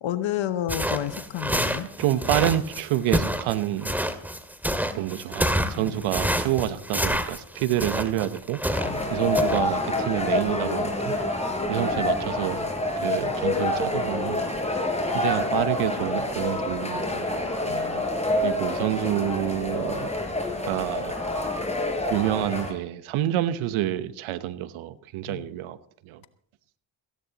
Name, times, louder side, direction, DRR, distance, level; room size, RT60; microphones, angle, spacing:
voice 1, 0.0-1.9 5.7-6.1 8.8-9.1 17.7-18.1 25.3-25.5, left 12 dB, 65° left, 12 dB, 1.1 m, -31 dB
sound 1, 0.7-9.0 9.3-9.6, equal, 5° right, 2.0 m, -27 dB
voice 2, 2.0-3.9 4.9-8.6 9.1-11.2 11.7-14.4 15.1-17.3 18.4-20.1 20.6-21.1 22.1-25.8 26.0-26.2, right 13 dB, 80° right, 14 dB, 1.1 m, -28 dB
sound 2, 8.7-22.7, left 1 dB, 15° left, 5.1 m, -27 dB
18.0 x 16.0 x 3.0 m, 0.63 s
supercardioid pair, 55°, 49 cm